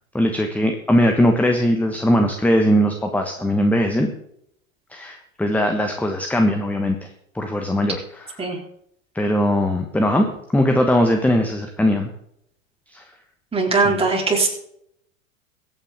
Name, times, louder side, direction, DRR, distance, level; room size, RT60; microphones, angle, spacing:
voice 1, 0.1-4.1 4.9-7.0 7.3-8.2 9.1-12.1 12.9-13.0 13.8-13.9, equal, 5° left, 4 dB, 1.3 m, -20 dB
voice 2, 13.5-14.5, right 4 dB, 15° right, -1 dB, 3.9 m, -19 dB
23.0 x 9.0 x 3.7 m, 0.72 s
hypercardioid pair, 95°, 41 cm